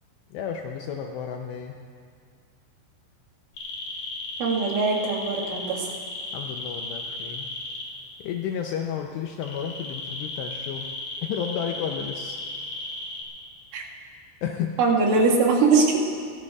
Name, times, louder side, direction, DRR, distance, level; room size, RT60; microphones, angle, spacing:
voice 1, 0.3-1.8 6.3-7.5 8.2-10.9 11.2-12.4 14.4-14.8, left 8 dB, 80° left, 3 dB, 2.5 m, -32 dB
sound 1, 3.6-7.8 9.4-13.2, left 2 dB, 55° left, 3.2 m, -35 dB
voice 2, 4.4-5.9 13.7-13.8 14.8-16.0, right 4 dB, 90° right, -3 dB, 4.3 m, -21 dB
22.5 x 17.5 x 2.4 m, 2.1 s
omnidirectional pair, 5.6 m